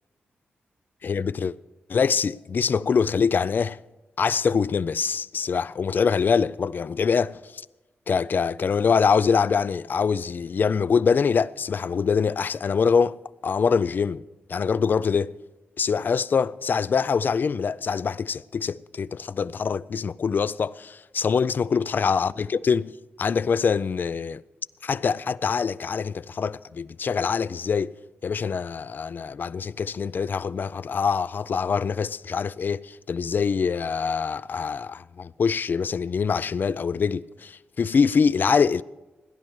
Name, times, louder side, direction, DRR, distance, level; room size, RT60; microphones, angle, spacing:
voice 1, 1.0-1.6 1.9-3.8 4.2-7.7 8.1-14.2 14.5-15.3 15.8-22.9 23.2-24.4 24.8-27.9 28.2-38.8, left 6 dB, 55° left, 0.4 m, -24 dB
17.5 x 10.5 x 4.7 m
cardioid pair, 75°, 4 cm